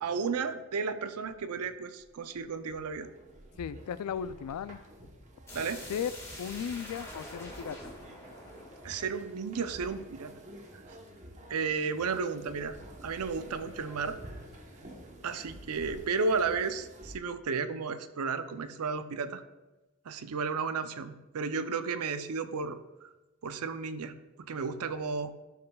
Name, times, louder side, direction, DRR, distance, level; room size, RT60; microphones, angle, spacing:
voice 1, 0.0-3.1 5.5-5.9 8.8-10.3 10.9-11.0 11.5-14.2 15.2-19.4 20.1-23.1 23.4-24.1 24.5-25.3, right 5 dB, 85° right, 11 dB, 0.5 m, -33 dB
sound 1, 0.9-1.0 1.2-17.2, right 1 dB, 30° right, 0.9 m, -50 dB
voice 2, 3.6-4.8 5.9-6.1 6.4-7.9, left 8 dB, 90° left, 16 dB, 0.3 m, -36 dB
sound 2, 5.5-10.2, left 1 dB, 10° left, 1.6 m, -46 dB
11.5 x 5.5 x 2.3 m, 1.1 s
head